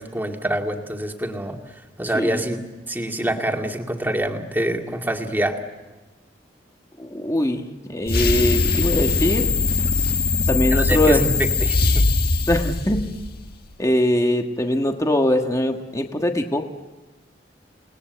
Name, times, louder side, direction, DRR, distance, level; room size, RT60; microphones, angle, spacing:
voice 1, 0.0-1.6 2.0-2.6 2.9-5.6 10.7-12.1, right 1 dB, 10° right, 2 dB, 2.2 m, -25 dB
voice 2, 7.0-9.5 10.5-11.2 12.5-13.1 13.8-16.6, left 1 dB, 20° left, 4 dB, 1.4 m, -22 dB
sound 1, 8.1-13.5, left 3 dB, 55° left, 1.6 m, -21 dB
29.5 x 19.5 x 8.0 m, 1.2 s
head